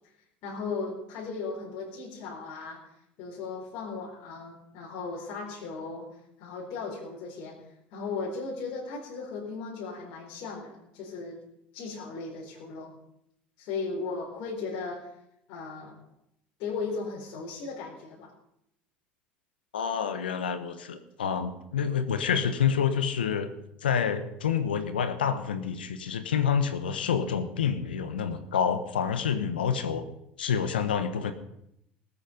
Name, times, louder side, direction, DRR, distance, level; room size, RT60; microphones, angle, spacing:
voice 1, 0.4-2.8 3.2-6.1 6.4-7.6 7.9-11.4 11.7-12.9 13.6-15.0 15.5-16.0 16.6-18.3, left 4 dB, 60° left, -4 dB, 4.2 m, -36 dB
voice 2, 19.7-23.5 23.8-30.0 30.4-31.3, left 7 dB, 85° left, 9 dB, 1.3 m, -28 dB
19.5 x 8.6 x 5.5 m, 0.79 s
hypercardioid pair, 75°, 5 cm